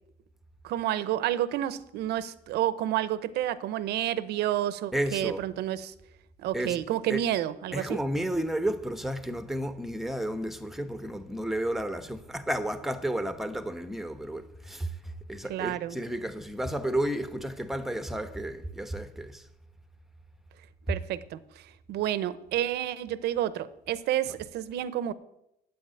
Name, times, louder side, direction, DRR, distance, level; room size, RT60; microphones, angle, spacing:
voice 1, 0.6-5.9 6.4-8.0 15.5-16.0 20.9-25.1, right 12 dB, 80° right, 0.8 m, -30 dB
voice 2, 4.9-5.4 6.5-6.8 7.1-7.2 7.7-14.9 15.3-19.4, right 1 dB, ahead, 1.0 m, -32 dB
9.4 x 8.5 x 9.0 m
cardioid pair, 110°, 17 cm